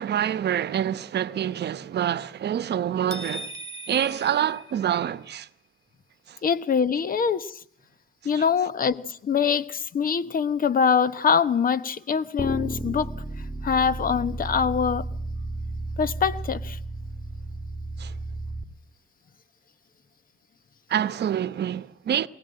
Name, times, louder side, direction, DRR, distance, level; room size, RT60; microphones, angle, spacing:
voice 1, 0.0-3.5 3.9-5.5 6.3-6.4 8.4-8.5 18.0-18.1 20.9-22.3, right 10 dB, 60° right, 1.0 m, -26 dB
sound 1, 3.1-5.3, equal, 15° right, 2.5 m, -39 dB
voice 2, 6.4-7.6 8.2-13.1 13.6-15.1 16.0-16.8, left 6 dB, 45° left, 1.1 m, -24 dB
sound 2, 12.4-18.6, right 2 dB, 10° left, 2.9 m, -33 dB
23.0 x 18.5 x 7.7 m
cardioid pair, 90°, 20 cm